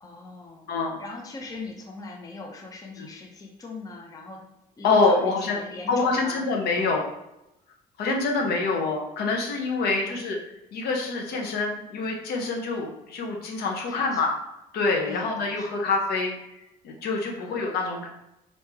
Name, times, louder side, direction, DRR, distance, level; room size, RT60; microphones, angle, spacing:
voice 1, 0.0-0.7 1.0-4.5 4.8-6.5 8.4-8.7 10.1-10.2 13.9-14.2 15.1-15.7 17.4-17.7, left 3 dB, 20° left, 0 dB, 0.6 m, -40 dB
voice 2, 0.7-1.0 3.0-3.1 4.8-5.6 5.9-7.0 8.0-10.4 10.7-14.3 14.7-16.3 16.8-18.1, left 3 dB, 70° left, 1 dB, 0.8 m, -26 dB
3.1 x 2.7 x 3.4 m, 0.88 s
cardioid pair, 110°, 17 cm